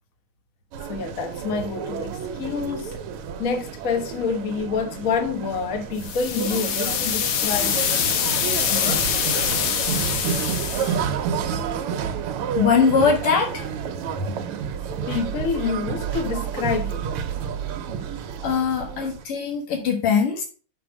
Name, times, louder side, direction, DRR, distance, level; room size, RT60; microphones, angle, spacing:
sound 1, 0.7-19.2, right 7 dB, 90° right, 1.7 m, -30 dB
voice 1, 0.9-3.0 3.4-7.9 8.6-9.1 14.8-17.1 18.7-19.1, left 5 dB, 45° left, 1.3 m, -28 dB
sound 2, 6.0-11.0, left 8 dB, 70° left, 0.8 m, -24 dB
voice 2, 12.6-14.1 18.4-20.4, left 6 dB, 90° left, 2.4 m, -21 dB
6.5 x 4.4 x 6.1 m
omnidirectional pair, 2.4 m